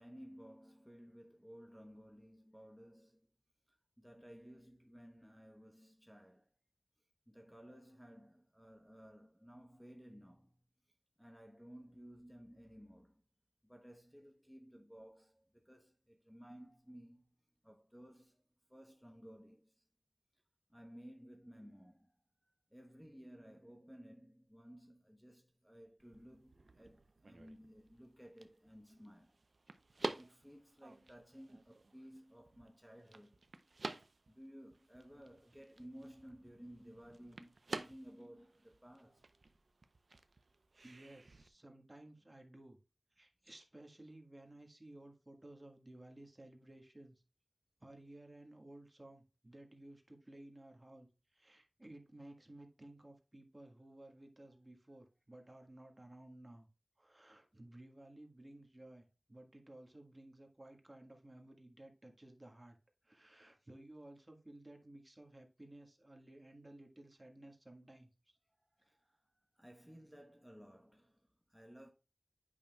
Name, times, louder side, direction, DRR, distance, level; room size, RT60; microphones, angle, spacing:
voice 1, 0.0-3.3 3.7-6.5 7.3-10.7 11.2-13.2 13.6-17.4 17.6-19.9 20.7-29.4 29.9-33.4 34.3-39.3 68.6-71.9, equal, ahead, 1.0 m, -57 dB
sound 1, 26.0-41.5, right 3 dB, 75° right, 0.5 m, -50 dB
voice 2, 40.8-42.8 43.1-47.2 47.8-56.7 57.0-62.8 63.0-68.4, right 1 dB, 30° right, 1.5 m, -56 dB
8.4 x 5.7 x 2.3 m
wide cardioid pair, 40°, 0 cm